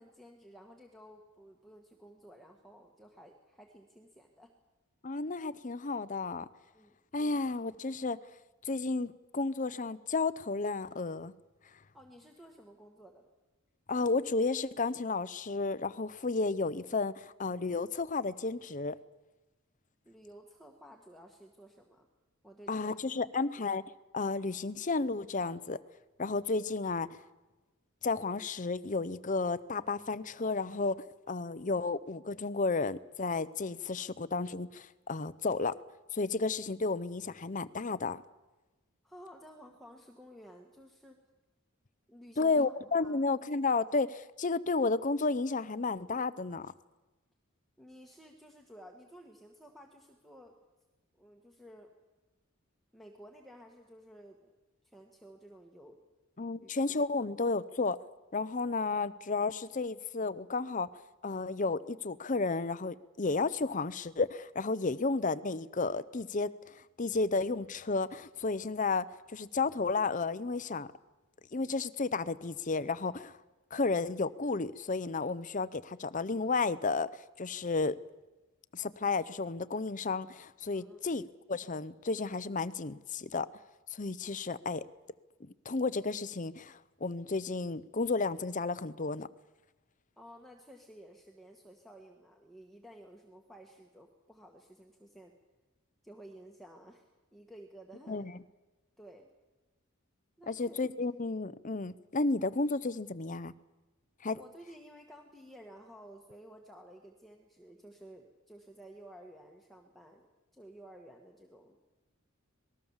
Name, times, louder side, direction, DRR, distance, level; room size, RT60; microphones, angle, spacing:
voice 1, 0.0-4.5 6.7-7.0 11.9-13.3 20.0-22.1 22.4-23.0 23.3-23.6 39.0-41.2 42.1-43.2 47.8-50.5 51.2-51.9 52.9-54.6 54.8-56.0 56.5-57.1 80.7-81.0 90.2-95.3 96.0-98.3 99.0-99.3 100.4-100.8 104.3-110.3 110.5-111.8, equal, ahead, 1.7 m, -54 dB
voice 2, 5.0-6.5 7.1-8.2 8.6-11.3 13.9-19.0 22.7-23.8 24.1-25.8 26.2-27.2 28.0-35.8 36.1-38.2 42.4-46.7 56.4-58.0 58.3-70.9 71.5-73.4 73.7-78.0 78.7-81.2 81.5-83.5 83.9-84.8 85.6-89.3 98.1-98.3 100.5-103.5 104.2-104.4, left 3 dB, 35° left, 0.7 m, -32 dB
26.5 x 19.5 x 7.3 m
head